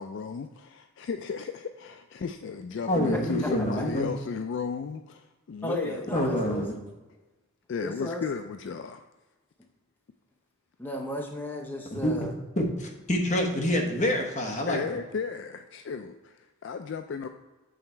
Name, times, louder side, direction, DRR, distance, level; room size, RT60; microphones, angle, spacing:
voice 1, 0.0-6.5 7.7-9.0 14.7-17.3, left 5 dB, 55° left, 8 dB, 0.3 m, -35 dB
voice 2, 2.9-4.1 6.1-6.7 11.9-12.3 12.6-15.0, equal, 35° left, 2 dB, 1.2 m, -27 dB
voice 3, 5.6-6.6 7.8-8.2 10.8-12.3, equal, 10° left, 1 dB, 0.7 m, -34 dB
7.8 x 4.1 x 4.5 m, 1.2 s
head